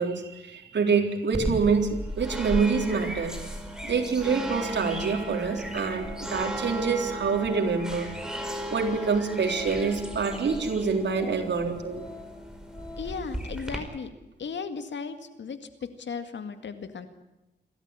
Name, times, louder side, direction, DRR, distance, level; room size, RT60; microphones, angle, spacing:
voice 1, 0.0-3.4 3.8-8.1 8.7-12.0, right 5 dB, 80° right, 3 dB, 3.8 m, -26 dB
sound 1, 1.3-13.8, right 1 dB, 5° right, 4.8 m, -35 dB
Organ, 3.3-3.5 3.7-13.3 13.6-13.8, left 3 dB, 20° left, 3.9 m, -46 dB
voice 2, 13.0-14.1 14.4-17.1, left 5 dB, 85° left, 9 dB, 2.1 m, -36 dB
27.5 x 13.5 x 9.9 m, 1.0 s
cardioid pair, 80°, 18 cm